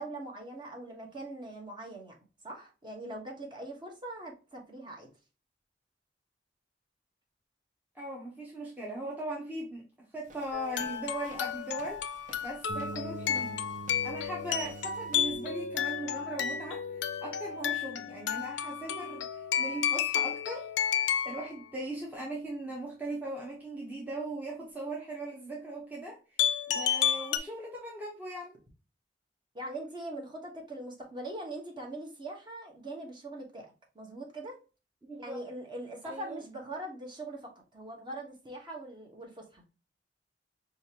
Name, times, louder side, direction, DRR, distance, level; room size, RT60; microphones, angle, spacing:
voice 1, 0.0-2.2 2.4-5.1 29.5-33.7 33.9-34.6 35.2-39.7, right 1 dB, 25° right, 0 dB, 1.1 m, -42 dB
voice 2, 7.9-9.8 10.1-13.6 14.0-16.8 17.2-20.7 21.2-26.2 26.7-28.6 35.0-35.4 36.0-36.4, right 1 dB, 10° right, -3 dB, 0.8 m, -39 dB
Walk footsteps, 10.2-15.5, right 2 dB, 45° right, 0.6 m, -55 dB
sound 1, 10.5-21.5 26.4-27.4, left 9 dB, 80° left, 0.4 m, -32 dB
sound 2, 12.7-20.4, right 4 dB, 85° right, 0.6 m, -48 dB
5.1 x 2.5 x 2.8 m, 0.32 s
head